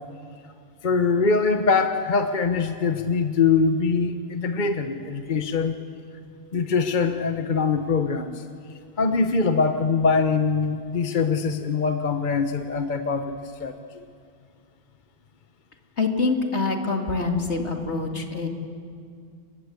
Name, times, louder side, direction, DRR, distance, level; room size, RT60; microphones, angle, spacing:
voice 1, 0.8-5.8 6.5-8.4 9.0-14.1, left 4 dB, 45° left, 7 dB, 1.1 m, -23 dB
voice 2, 16.0-18.5, left 3 dB, 70° left, 3 dB, 2.8 m, -25 dB
29.5 x 21.0 x 8.3 m, 2.4 s
omnidirectional pair, 1.2 m